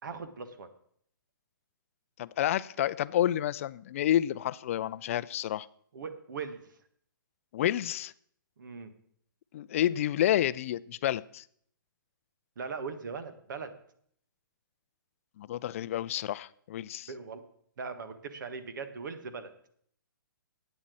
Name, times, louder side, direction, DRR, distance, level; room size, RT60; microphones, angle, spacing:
voice 1, 0.0-0.7 5.9-6.6 8.6-8.9 12.6-13.7 17.1-17.4 17.8-19.5, right 5 dB, 60° right, 10 dB, 1.5 m, -39 dB
voice 2, 2.2-5.7 7.5-8.1 9.5-11.4 15.4-17.1, left 12 dB, 40° left, 18 dB, 0.4 m, -29 dB
8.9 x 7.3 x 8.4 m, 0.64 s
hypercardioid pair, 155°, 12 cm